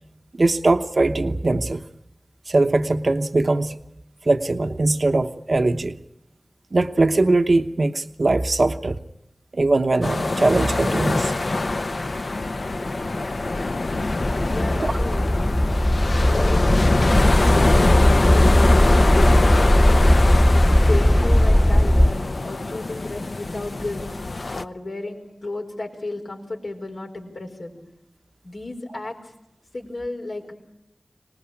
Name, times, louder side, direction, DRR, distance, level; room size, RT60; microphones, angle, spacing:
voice 1, 0.3-1.8 2.5-3.8 4.2-6.0 6.7-9.0 9.5-11.3 14.8-14.9, right 2 dB, 70° right, 8 dB, 0.9 m, -21 dB
sound 1, 10.0-24.6, left 2 dB, 75° left, 0.8 m, -24 dB
sound 2, 14.0-22.1, left 1 dB, 20° left, 1.1 m, -17 dB
voice 2, 14.4-15.2 15.6-17.1 17.3-20.2 20.8-24.0 24.5-27.7 28.4-29.3 29.7-30.5, left 2 dB, 90° left, 0 dB, 4.9 m, -34 dB
25.0 x 19.5 x 8.6 m, 0.85 s
wide cardioid pair, 40°, 0 cm